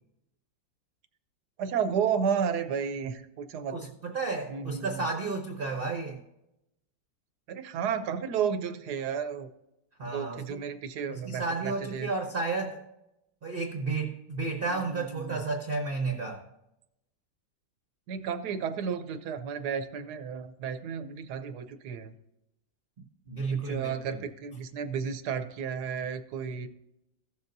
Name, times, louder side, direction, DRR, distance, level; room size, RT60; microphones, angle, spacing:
voice 1, 1.6-3.8 4.5-5.0 7.5-9.5 10.1-12.1 14.7-15.4 18.1-22.1 23.5-26.7, right 7 dB, 65° right, 9 dB, 1.2 m, -32 dB
voice 2, 3.7-6.2 10.0-10.6 11.1-12.8 13.4-16.4 23.3-24.2, right 3 dB, 40° right, 2 dB, 0.8 m, -32 dB
15.5 x 7.1 x 2.7 m, 0.86 s
omnidirectional pair, 2.1 m